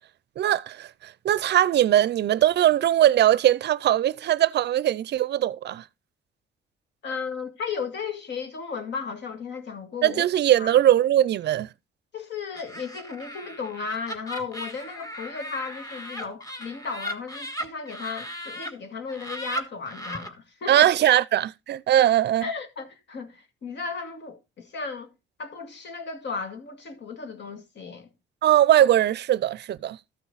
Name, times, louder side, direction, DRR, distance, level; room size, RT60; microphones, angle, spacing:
voice 1, 0.4-5.8 10.0-11.7 20.7-22.5 28.4-30.0, right 12 dB, 60° right, 0.5 m, -20 dB
voice 2, 7.0-10.2 10.6-10.8 12.1-20.9 22.4-25.1 25.4-28.1, left 5 dB, 60° left, 2.1 m, -35 dB
Laughter, 12.5-18.7 19.1-20.3, equal, 15° left, 1.5 m, -36 dB
13.5 x 6.0 x 3.9 m
cardioid pair, 90°, 20 cm